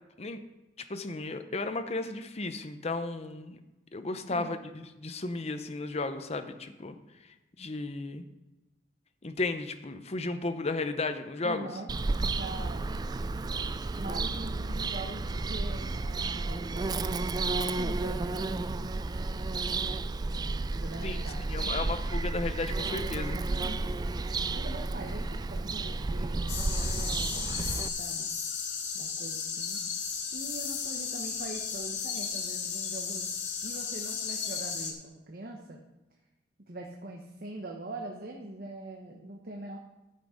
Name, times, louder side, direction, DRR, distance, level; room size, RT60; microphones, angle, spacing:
voice 1, 0.9-3.6 3.9-4.6 5.0-6.9 7.6-8.2 9.2-11.7 21.0-21.2 21.5-23.4, left 3 dB, 35° left, 8 dB, 0.7 m, -34 dB
voice 2, 4.1-4.6 11.4-11.9 12.2-12.9 13.9-18.9 20.4-21.9 23.5-23.8 24.5-26.7 27.2-28.3 28.9-29.8 30.3-33.3 33.6-35.8 36.7-39.8, right 2 dB, 55° right, 1 dB, 1.1 m, -43 dB
Bird vocalization bird call bird song, 11.9-27.9, right 3 dB, 25° right, 0.3 m, -32 dB
sound 1, 26.5-34.9, left 6 dB, 75° left, 1.8 m, -34 dB
13.0 x 6.2 x 5.0 m, 1.0 s
head